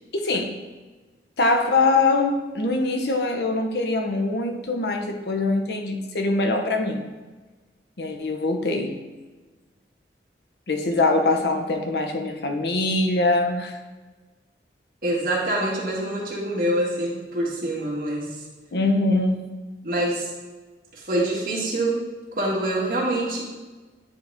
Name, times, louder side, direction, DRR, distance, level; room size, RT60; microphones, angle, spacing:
voice 1, 0.1-0.6 1.4-7.0 8.0-9.0 10.7-13.8 18.7-19.5, left 2 dB, 70° left, 4 dB, 0.8 m, -23 dB
voice 2, 15.0-18.4 19.8-20.3 20.9-22.0 22.3-23.4, right 1 dB, 50° right, -5 dB, 1.9 m, -25 dB
9.8 x 4.0 x 3.4 m, 1.3 s
head